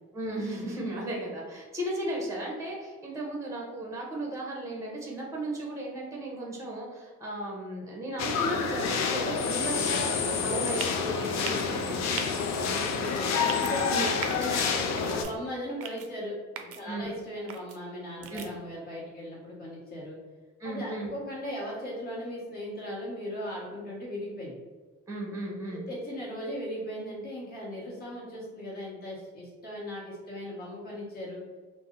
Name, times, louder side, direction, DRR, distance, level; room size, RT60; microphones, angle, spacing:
voice 1, 0.1-12.5 13.2-13.3 13.9-14.4 16.8-17.1 18.3-18.4 20.6-21.1 25.1-25.9, right 1 dB, 10° right, -2 dB, 0.8 m, -35 dB
sound 1, 8.2-15.2, left 5 dB, 60° left, 0.5 m, -28 dB
sound 2, 10.8-11.0 11.4-11.7 12.1-12.3 13.3-13.7 14.2-14.5 15.0-15.3 15.8-16.1 16.5-16.8 17.5-17.8 18.2-18.5, right 7 dB, 50° right, 0.4 m, -38 dB
voice 2, 12.7-13.9 14.3-14.7 15.0-20.2 20.6-24.6 25.7-31.4, equal, 30° left, -7 dB, 1.2 m, -38 dB
2.6 x 2.1 x 3.6 m, 1.3 s
cardioid pair, 90°, 30 cm